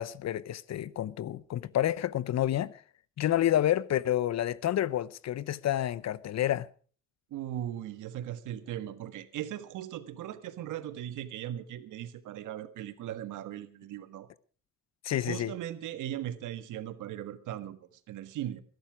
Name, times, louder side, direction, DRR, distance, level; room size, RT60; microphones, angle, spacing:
voice 1, 0.0-2.8 3.2-6.7 15.0-15.5, left 12 dB, 60° left, 0.8 m, -29 dB
voice 2, 7.3-14.3 15.2-18.6, right 11 dB, 85° right, 1.5 m, -38 dB
21.0 x 11.5 x 4.9 m
cardioid pair, 90°, 30 cm